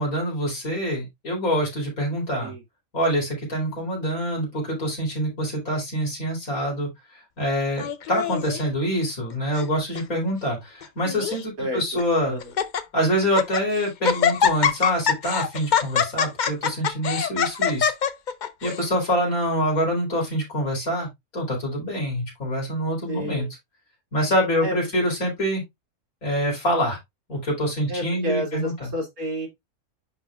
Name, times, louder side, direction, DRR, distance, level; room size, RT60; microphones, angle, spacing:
voice 1, 0.0-2.5 2.9-6.9 7.4-12.4 12.9-17.9 18.6-21.1 21.3-23.5 24.1-25.6 26.2-27.0 27.3-28.9, equal, 75° left, 4.7 m, -25 dB
Laughter, 7.8-8.6 9.3-9.7 9.9-10.0 10.8-11.4 12.0-12.1 12.4-12.8 13.2-13.6 14.0-18.8, left 7 dB, 55° left, 0.5 m, -24 dB
voice 2, 11.6-12.4 23.1-23.5 24.6-24.8 27.9-29.5, equal, 85° right, 3.0 m, -30 dB
10.5 x 4.1 x 2.4 m
omnidirectional pair, 1.5 m